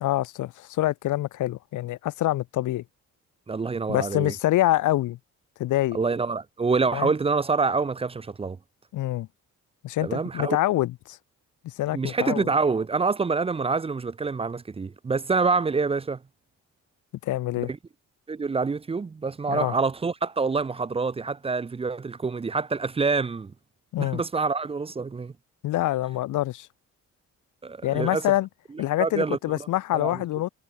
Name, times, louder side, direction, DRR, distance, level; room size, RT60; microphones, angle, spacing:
voice 1, 0.0-2.8 3.9-5.2 5.6-6.0 6.9-7.1 8.9-9.3 9.8-11.2 11.6-12.5 17.2-17.7 19.5-19.7 23.9-24.2 25.6-26.7 27.8-28.5 28.8-30.5, left 15 dB, 70° left, 0.8 m, -26 dB
voice 2, 3.5-4.3 5.9-8.6 10.0-10.6 11.9-16.2 17.6-17.8 18.3-23.5 24.0-25.3 27.6-28.2 29.0-29.4 29.9-30.2, right 4 dB, 20° right, 0.7 m, -26 dB
cardioid pair, 175°, 31 cm